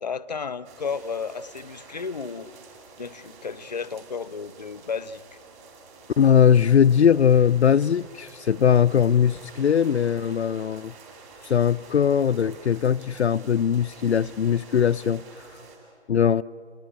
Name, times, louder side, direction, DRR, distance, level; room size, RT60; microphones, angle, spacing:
voice 1, 0.0-2.5 3.0-5.2, left 5 dB, 40° left, 0.8 m, -33 dB
sound 1, 0.6-15.8, right 4 dB, 15° right, 2.8 m, -49 dB
voice 2, 6.2-10.9 11.4-15.2 15.5-15.6 16.1-16.4, left 8 dB, 70° left, 0.6 m, -20 dB
28.5 x 21.5 x 8.6 m
hypercardioid pair, 170°, 35 cm